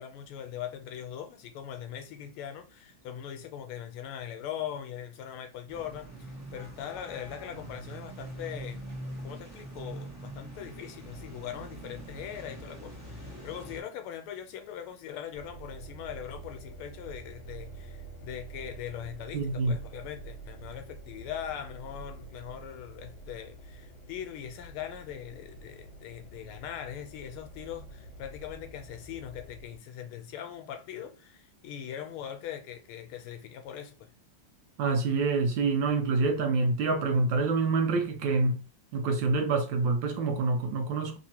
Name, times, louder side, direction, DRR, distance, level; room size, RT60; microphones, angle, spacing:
voice 1, 0.0-8.8 9.2-34.1, left 9 dB, 90° left, 1.5 m, -41 dB
sound 1, 5.7-13.8, right 1 dB, 15° right, 0.6 m, -43 dB
sound 2, 15.3-29.8, right 3 dB, 55° left, 1.3 m, -47 dB
voice 2, 19.3-19.7 34.8-38.6 38.9-41.2, right 3 dB, 75° right, 1.2 m, -26 dB
3.5 x 2.8 x 2.8 m
omnidirectional pair, 2.4 m